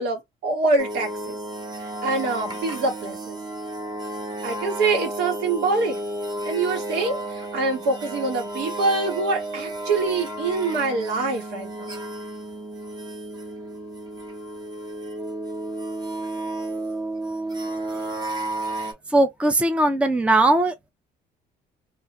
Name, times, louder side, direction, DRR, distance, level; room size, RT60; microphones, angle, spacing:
voice 1, 0.0-1.4 2.0-3.4 4.4-6.0 6.4-12.0, right 3 dB, 80° right, 1.4 m, -25 dB
sound 1, 0.8-18.9, right 1 dB, 25° right, 0.9 m, -32 dB
voice 2, 19.1-20.9, right 2 dB, 5° right, 0.5 m, -19 dB
2.5 x 2.2 x 2.9 m
cardioid pair, 110°, 17 cm